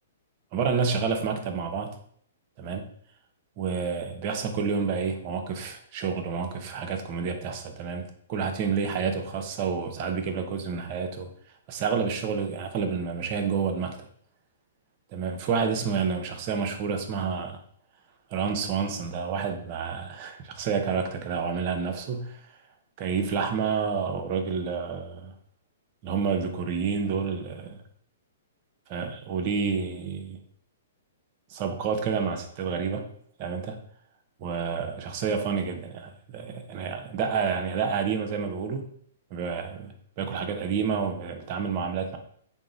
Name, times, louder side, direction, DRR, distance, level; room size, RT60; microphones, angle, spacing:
voice 1, 0.5-2.0 2.6-2.8 3.6-11.3 11.7-14.0 15.1-17.6 18.3-22.4 23.0-25.3 26.0-27.8 28.9-30.4 31.5-33.1 33.4-33.8 34.4-38.8 39.3-42.2, right 6 dB, 45° right, 5 dB, 0.6 m, -29 dB
3.6 x 2.0 x 3.8 m, 0.64 s
hypercardioid pair, 125°, 0 cm